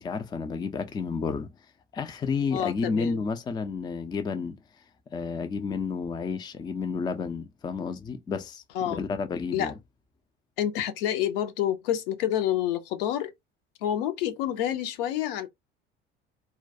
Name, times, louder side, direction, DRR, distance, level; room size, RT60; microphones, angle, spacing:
voice 1, 0.0-1.5 1.9-4.6 5.1-9.7, left 5 dB, 15° left, 0.4 m, -31 dB
voice 2, 2.5-3.2 8.7-9.1 9.5-9.7 10.6-13.3 13.8-15.5, left 11 dB, 65° left, 0.6 m, -28 dB
2.2 x 2.2 x 2.6 m
figure-of-eight pair, 65°, 30 cm